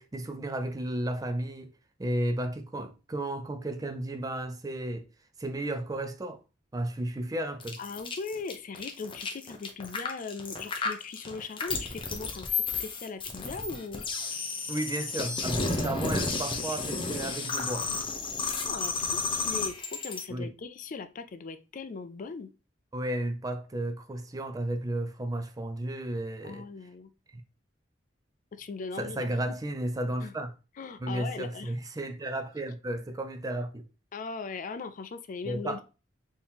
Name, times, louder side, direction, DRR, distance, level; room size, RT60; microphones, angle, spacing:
voice 1, 0.0-1.7 2.0-5.1 5.4-6.4 6.7-7.8 14.7-17.9 20.3-20.5 22.9-26.6 29.0-30.5 31.0-33.9 35.5-35.8, right 1 dB, 20° right, 0.4 m, -33 dB
sound 1, 7.6-20.2, left 4 dB, 30° left, 0.8 m, -32 dB
voice 2, 7.8-14.0 18.7-22.5 26.4-27.1 28.5-29.3 30.2-30.3 30.8-31.7 32.2-32.3 34.1-35.8, left 4 dB, 45° left, 0.4 m, -39 dB
4.4 x 2.9 x 3.5 m
head